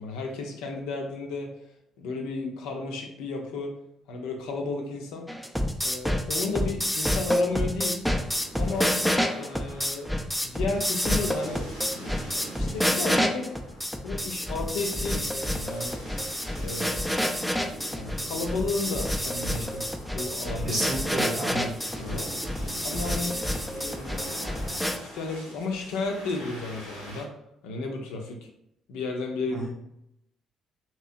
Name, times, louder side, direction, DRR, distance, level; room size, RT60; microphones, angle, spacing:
voice 1, 0.0-1.5 2.0-3.7 4.1-5.3 5.8-8.0 8.6-9.0 9.3-10.1 10.4-13.5 14.0-16.0 16.6-17.2 17.9-19.9 20.1-20.8 22.0-22.3 22.8-23.4 23.7-27.3 27.6-28.5 28.9-29.7, left 3 dB, 65° left, 2 dB, 0.5 m, -33 dB
sound 1, 5.3-25.0, equal, ahead, 0.4 m, -28 dB
sound 2, 8.2-27.2, right 1 dB, 90° left, 0.9 m, -44 dB
voice 2, 20.6-21.7 29.5-29.7, right 1 dB, 50° right, -4 dB, 0.6 m, -30 dB
3.0 x 2.9 x 2.6 m, 0.78 s
figure-of-eight pair, 45°, 0 cm